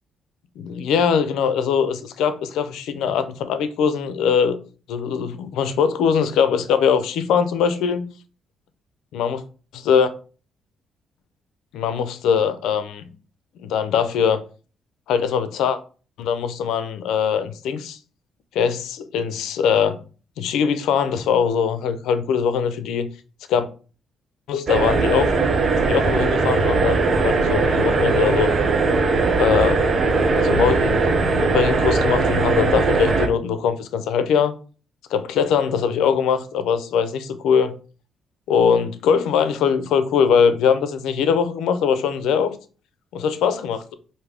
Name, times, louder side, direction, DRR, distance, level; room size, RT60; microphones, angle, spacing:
voice 1, 0.6-4.6 4.9-8.1 9.1-9.4 9.7-10.1 11.7-13.1 13.6-14.4 15.1-15.8 16.2-18.0 18.5-20.0 20.4-23.1 23.5-23.7 24.5-25.4 25.8-28.5 29.4-29.9 30.4-34.5 35.1-37.7 38.5-42.6 43.1-44.0, left 7 dB, 85° left, 0.5 m, -21 dB
sound 1, 24.7-33.3, right 3 dB, 45° right, 0.8 m, -19 dB
4.8 x 2.6 x 3.4 m
cardioid pair, 90°, 0 cm